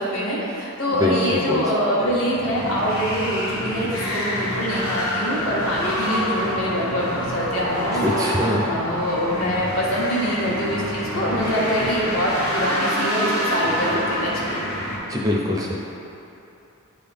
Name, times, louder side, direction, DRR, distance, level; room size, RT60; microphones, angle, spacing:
voice 1, 0.0-8.2 8.5-14.6, equal, 60° left, -6 dB, 1.4 m, -24 dB
voice 2, 0.9-2.1 7.9-8.7 11.8-11.9 15.1-15.8, left 1 dB, 15° right, -2 dB, 0.5 m, -24 dB
sound 1, 2.1-15.0, equal, 80° left, 1.4 m, -27 dB
9.6 x 3.9 x 3.4 m, 2.9 s
head